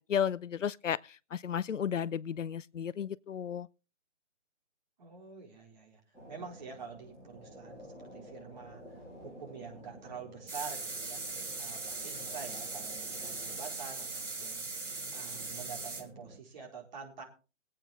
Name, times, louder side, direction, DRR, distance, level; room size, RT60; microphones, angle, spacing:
voice 1, 0.1-3.7, left 8 dB, 85° left, 0.7 m, -33 dB
voice 2, 5.0-6.0 6.3-14.7 15.1-17.2, right 6 dB, 35° right, 4.6 m, -47 dB
sound 1, 6.1-16.4, equal, 5° right, 7.2 m, -51 dB
sound 2, 10.5-16.0, right 3 dB, 75° right, 4.6 m, -40 dB
23.0 x 8.8 x 3.6 m
hypercardioid pair, 160°, 37 cm